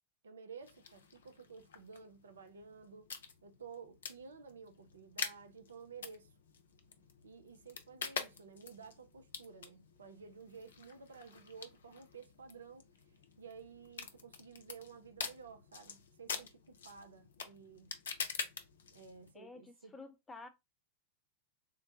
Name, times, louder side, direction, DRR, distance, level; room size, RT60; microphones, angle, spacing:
voice 1, 0.2-3.1 3.4-6.3 7.2-12.9 13.4-17.9 18.9-19.9, right 5 dB, 70° right, 0.5 m, -53 dB
sound 1, 0.6-19.3, left 6 dB, 65° left, 0.5 m, -47 dB
voice 2, 19.3-20.5, left 3 dB, 15° left, 0.6 m, -51 dB
3.8 x 2.2 x 2.7 m
figure-of-eight pair, 90°, 0 cm